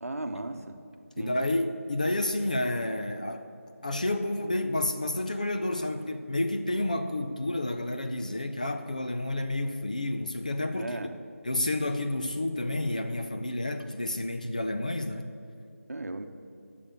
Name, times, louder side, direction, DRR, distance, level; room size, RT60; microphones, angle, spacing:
voice 1, 0.0-0.8 1.2-1.4 10.8-11.1 15.9-16.2, right 2 dB, 65° right, 7 dB, 0.9 m, -36 dB
voice 2, 1.2-3.5 3.8-11.0 11.4-15.3, left 1 dB, 30° left, 7 dB, 0.4 m, -30 dB
8.5 x 6.7 x 8.6 m, 2.4 s
figure-of-eight pair, 175°, 8 cm